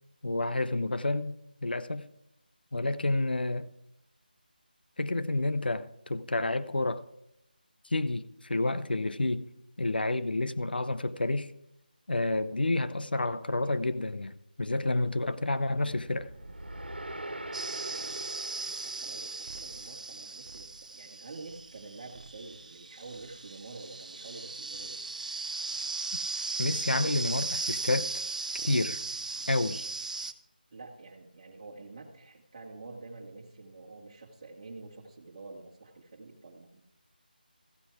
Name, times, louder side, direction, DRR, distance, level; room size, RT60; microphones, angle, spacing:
voice 1, 0.2-1.4 1.6-2.1 2.7-3.7 5.0-7.1 7.8-9.5 9.8-11.5 12.1-16.3 26.6-28.1 28.7-29.0 29.5-29.9, left 2 dB, 75° left, 0.8 m, -29 dB
sound 1, 15.8-20.1, right 1 dB, 85° right, 1.5 m, -43 dB
sound 2, 17.5-30.3, right 3 dB, 50° right, 0.8 m, -37 dB
voice 2, 18.8-25.0 30.7-36.8, right 3 dB, 35° right, 2.2 m, -47 dB
14.5 x 9.5 x 4.8 m
figure-of-eight pair, 165°, 5 cm